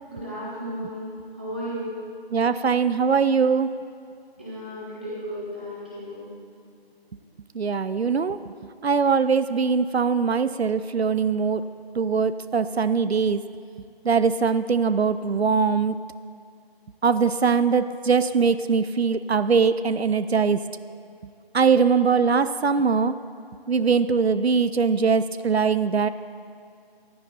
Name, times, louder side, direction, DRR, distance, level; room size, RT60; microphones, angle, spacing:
voice 1, 0.0-1.9 4.4-6.3, equal, 10° right, -9 dB, 1.5 m, -34 dB
voice 2, 2.3-3.7 7.6-8.4 8.8-11.6 12.0-13.4 14.0-16.0 17.0-20.6 21.5-23.1 23.7-26.1, right 5 dB, 85° right, 13 dB, 0.6 m, -21 dB
15.0 x 11.0 x 4.2 m, 2.4 s
figure-of-eight pair, 170°, 31 cm